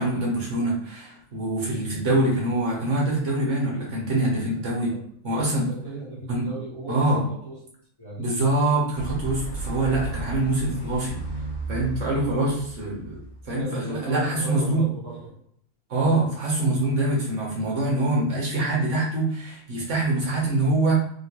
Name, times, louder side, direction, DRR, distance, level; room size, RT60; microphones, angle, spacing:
voice 1, 0.0-4.9 5.2-5.7 6.3-6.5 6.9-7.2 8.2-11.2 11.7-13.2 13.5-14.8 15.9-20.9, right 2 dB, 60° right, -3 dB, 1.3 m, -24 dB
voice 2, 5.6-7.5 8.0-8.5 12.0-12.6 13.6-15.4, right 1 dB, 20° left, -8 dB, 1.0 m, -36 dB
sound 1, 8.9-14.0, right 3 dB, 70° left, 1.1 m, -34 dB
3.6 x 2.4 x 2.9 m, 0.64 s
omnidirectional pair, 1.4 m